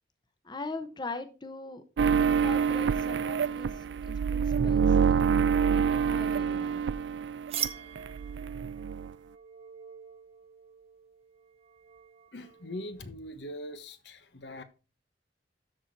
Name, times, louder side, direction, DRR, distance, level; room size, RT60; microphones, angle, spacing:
voice 1, 0.4-1.8 2.2-5.5 5.7-6.8, left 2 dB, 25° left, 0.9 m, -41 dB
sound 1, 2.0-7.7 7.9-9.1, right 6 dB, 75° right, 0.4 m, -26 dB
sound 2, 7.5-13.1, right 9 dB, 35° right, 0.8 m, -42 dB
voice 2, 12.3-14.6, left 1 dB, 70° left, 1.2 m, -41 dB
13.0 x 4.3 x 4.6 m
head